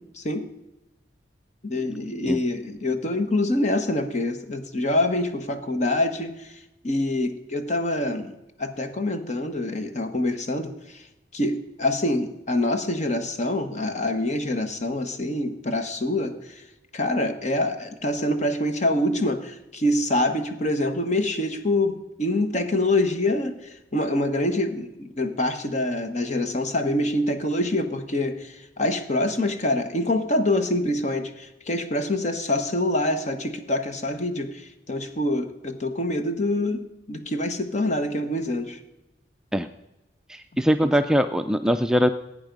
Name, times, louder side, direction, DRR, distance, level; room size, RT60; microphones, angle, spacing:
voice 1, 1.6-6.5 6.8-8.3 8.6-11.0 11.3-16.6 16.9-38.8 40.5-40.9, left 1 dB, 40° left, 7 dB, 1.2 m, -25 dB
voice 2, 40.3-42.1, equal, 5° right, 7 dB, 0.4 m, -21 dB
16.5 x 8.8 x 5.3 m, 0.98 s
head